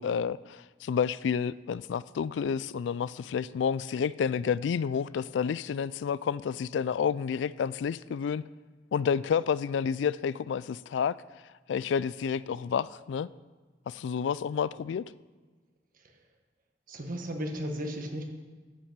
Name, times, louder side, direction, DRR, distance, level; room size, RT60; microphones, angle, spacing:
voice 1, 0.0-8.4 8.9-11.2 11.7-13.3 13.9-15.1, left 7 dB, 80° left, 0.3 m, -30 dB
voice 2, 16.9-18.2, equal, 50° right, 1.5 m, -34 dB
12.5 x 6.0 x 7.3 m
head